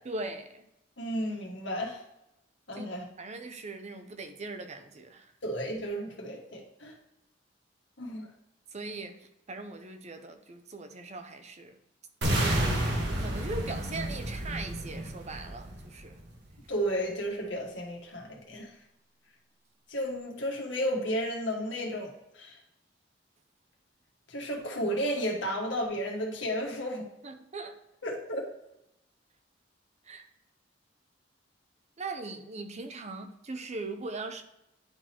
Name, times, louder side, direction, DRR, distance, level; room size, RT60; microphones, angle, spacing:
voice 1, 0.1-0.6 2.7-2.9 3.2-5.3 8.7-9.1 9.5-11.8 12.3-12.6 12.8-16.2 27.2-27.8 30.1-30.2 32.0-34.4, right 3 dB, 35° right, 7 dB, 0.7 m, -40 dB
voice 2, 1.0-2.0 2.7-3.1 5.4-6.9 8.0-8.3 16.7-18.7 19.9-22.6 24.3-27.0 28.0-28.4, equal, 70° left, -1 dB, 1.8 m, -33 dB
sound 1, 12.2-16.2, right 1 dB, 60° right, 1.5 m, -30 dB
10.5 x 4.0 x 3.0 m, 0.85 s
head